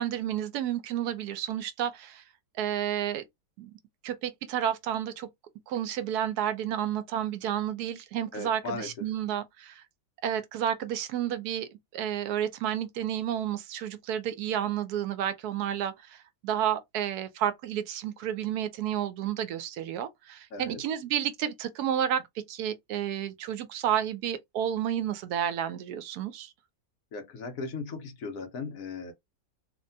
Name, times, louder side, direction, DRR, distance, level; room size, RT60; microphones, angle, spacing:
voice 1, 0.0-2.2 2.6-3.2 3.6-3.7 4.0-5.3 5.7-9.8 10.2-16.2 16.4-26.5, right 10 dB, 90° right, 1.1 m, -31 dB
voice 2, 8.3-8.9 20.5-20.8 27.1-29.1, left 4 dB, 65° left, 1.2 m, -37 dB
3.2 x 2.2 x 2.6 m
omnidirectional pair, 1.6 m